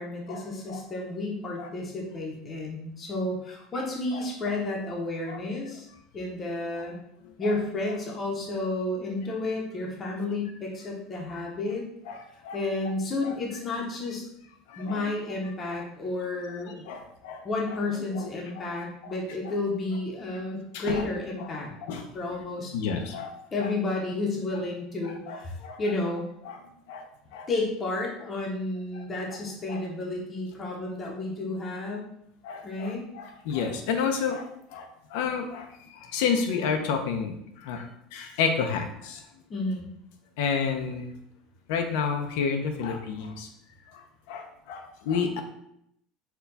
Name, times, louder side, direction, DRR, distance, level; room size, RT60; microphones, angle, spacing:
voice 1, 0.0-5.9 6.1-6.9 7.4-11.8 12.5-14.2 14.8-16.7 17.4-21.7 22.1-22.7 23.5-26.3 27.5-32.1 32.6-33.0 39.5-39.9, left 2 dB, 20° left, -2 dB, 0.7 m, -31 dB
voice 2, 12.1-12.6 13.2-13.3 14.7-15.1 15.7-15.8 16.9-17.5 18.1-18.3 18.6-18.7 19.0-19.1 20.7-21.1 21.8-22.0 22.7-23.7 25.3-25.8 26.5-26.6 26.9-27.0 27.3-27.5 29.7-29.8 32.4-35.7 35.9-39.2 40.4-41.1 41.7-43.5 43.9-44.0 44.3-45.4, left 6 dB, 75° left, 5 dB, 0.5 m, -30 dB
4.4 x 2.2 x 3.9 m, 0.75 s
cardioid pair, 155°, 0 cm